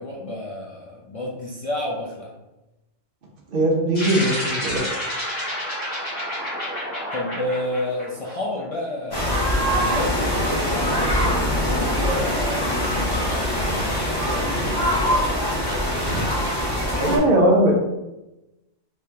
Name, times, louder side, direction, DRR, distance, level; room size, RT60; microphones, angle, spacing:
voice 1, 0.0-2.3 7.1-9.5 9.7-11.1 11.6-14.8, left 1 dB, 60° left, -4 dB, 0.3 m, -31 dB
voice 2, 3.5-5.1 16.0-16.2 17.0-17.7, right 1 dB, 50° right, 0 dB, 0.9 m, -20 dB
sound 1, 3.9-8.6, equal, 75° left, 1.7 m, -29 dB
sound 2, 9.1-17.2, equal, 25° left, 0.7 m, -23 dB
3.6 x 2.8 x 3.3 m, 0.97 s
omnidirectional pair, 1.3 m